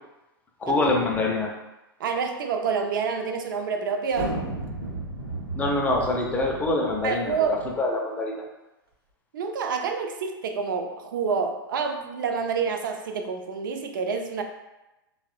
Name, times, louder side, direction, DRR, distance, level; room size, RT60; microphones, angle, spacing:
voice 1, 0.6-1.6 5.6-8.4, left 2 dB, 10° left, 0 dB, 0.4 m, -25 dB
voice 2, 2.0-4.4 7.0-7.6 9.3-14.4, right 5 dB, 60° right, 6 dB, 0.4 m, -28 dB
sound 1, 4.1-7.8, right 2 dB, 90° right, 0.8 m, -34 dB
4.0 x 2.1 x 2.4 m, 1.0 s
figure-of-eight pair, 100°, 12 cm